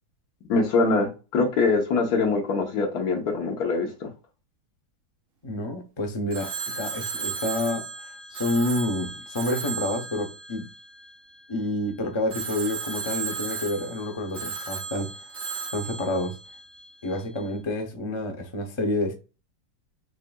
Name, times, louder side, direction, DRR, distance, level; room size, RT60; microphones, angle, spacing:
voice 1, 0.5-4.1, left 4 dB, 65° left, 1.5 m, -23 dB
voice 2, 5.4-7.9 8.3-10.7 11.5-15.3 15.7-16.4 17.0-19.1, left 1 dB, 35° left, 0.4 m, -29 dB
Telephone, 6.3-11.6 12.3-17.2, right 5 dB, 55° right, 1.3 m, -35 dB
6.5 x 2.5 x 2.3 m
omnidirectional pair, 1.8 m